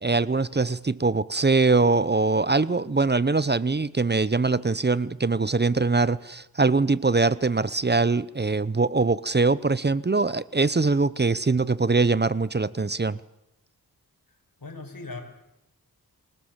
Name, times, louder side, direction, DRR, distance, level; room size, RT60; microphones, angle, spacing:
voice 1, 0.0-13.2, right 3 dB, 25° right, 18 dB, 0.7 m, -22 dB
voice 2, 14.3-15.2, left 3 dB, 60° left, 4 dB, 5.3 m, -40 dB
27.0 x 18.0 x 7.4 m, 0.89 s
wide cardioid pair, 60°, 38 cm